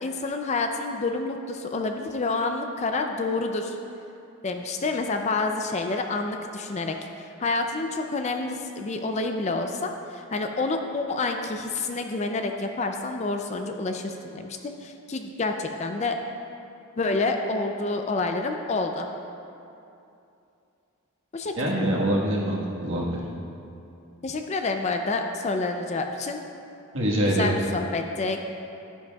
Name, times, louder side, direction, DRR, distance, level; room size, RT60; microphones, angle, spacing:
voice 1, 0.0-3.8 4.4-7.0 7.4-16.2 17.0-19.1 21.3-21.7 24.2-26.4 27.3-28.4, left 3 dB, 30° left, 5 dB, 0.4 m, -28 dB
voice 2, 21.6-23.2 26.9-27.5, right 1 dB, 60° right, -4 dB, 1.5 m, -24 dB
11.5 x 10.0 x 2.3 m, 2.7 s
head